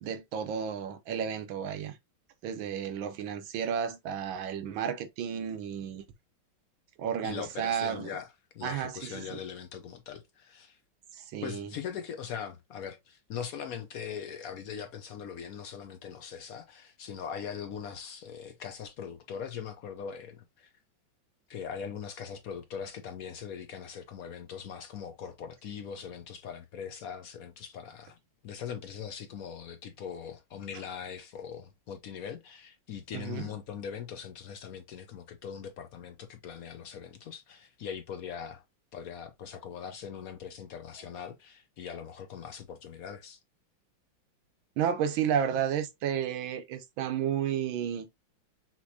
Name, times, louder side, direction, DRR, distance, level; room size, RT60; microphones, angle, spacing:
voice 1, 0.0-2.0 2.4-6.0 7.0-8.1 8.6-9.4 11.1-11.7 33.1-33.5 44.8-48.1, right 8 dB, 85° right, 1.5 m, -32 dB
voice 2, 7.2-8.3 8.5-10.8 11.4-20.7 21.5-28.2 28.4-38.6 38.9-43.4, left 7 dB, 75° left, 0.8 m, -41 dB
5.9 x 2.9 x 2.7 m
omnidirectional pair, 2.1 m